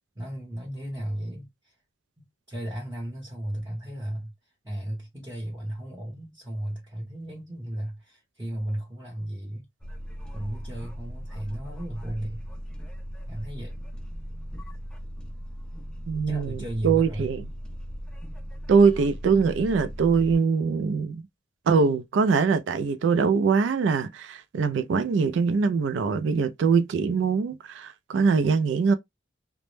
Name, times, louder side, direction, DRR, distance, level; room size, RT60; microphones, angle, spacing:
voice 1, 0.1-1.7 2.2-4.3 4.6-9.7 10.3-12.5 13.3-13.9 16.3-17.3, right 1 dB, 15° right, 0.8 m, -35 dB
sound 1, 9.8-20.4, equal, 5° left, 0.5 m, -38 dB
voice 2, 16.1-16.6 16.8-17.5 18.7-21.2 21.7-28.9, right 5 dB, 70° right, 0.3 m, -23 dB
2.1 x 2.0 x 3.0 m
head